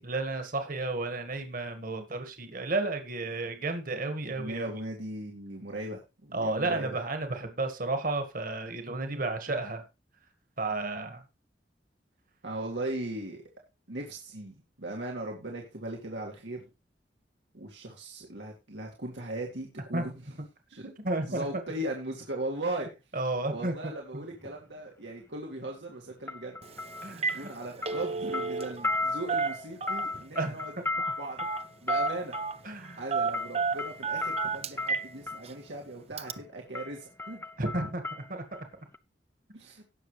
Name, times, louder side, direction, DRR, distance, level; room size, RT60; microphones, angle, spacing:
voice 1, 0.0-4.7 6.3-9.8 10.6-11.2 19.9-20.0 20.8-21.6 23.1-24.2 27.0-27.5 27.8-27.9 30.3-30.6 32.6-33.1 37.6-38.6, right 2 dB, 50° right, 7 dB, 1.7 m, -32 dB
voice 2, 4.2-7.0 12.4-13.4 13.9-16.6 17.5-20.1 20.7-20.8 21.3-22.9 23.5-26.6 27.3-30.7 31.0-31.4 31.8-32.4 33.0-37.4 39.5-39.8, right 1 dB, 85° right, 0 dB, 2.1 m, -38 dB
sound 1, 24.3-24.6 26.3-27.6 27.8-35.5 36.3-36.5 36.7-38.6 38.9-39.0, left 2 dB, 10° left, 0.6 m, -36 dB
Telephone, 26.6-26.8 27.1-27.4 27.7-29.0 29.3-30.2 31.4-31.6 31.9-32.6 33.1-35.1 35.5-35.6 36.2-36.3, right 5 dB, 35° right, 0.7 m, -31 dB
17.5 x 6.6 x 3.2 m, 0.27 s
head